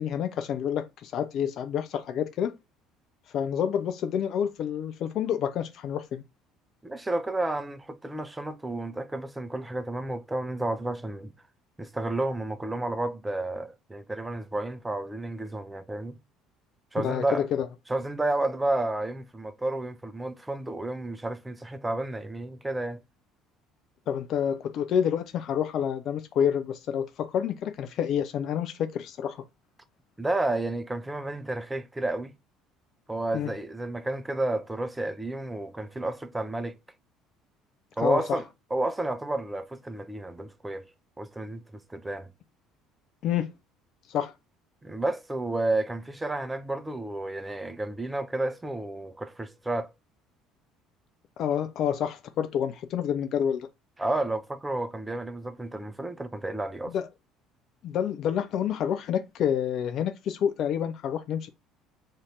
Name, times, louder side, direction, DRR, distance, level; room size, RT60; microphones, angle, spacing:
voice 1, 0.0-2.5 3.3-6.2 17.0-17.7 24.1-29.4 33.3-33.5 38.0-38.4 43.2-43.5 44.1-44.3 51.4-53.7 56.9-57.1 57.8-61.5, left 9 dB, 50° left, 0.3 m, -28 dB
voice 2, 6.8-11.3 11.8-16.2 16.9-17.4 17.9-23.0 30.2-32.3 33.1-36.8 38.0-40.9 41.2-42.3 44.8-49.9 54.0-56.9, right 2 dB, 10° right, 0.5 m, -31 dB
2.5 x 2.5 x 3.2 m
figure-of-eight pair, 55°, 0 cm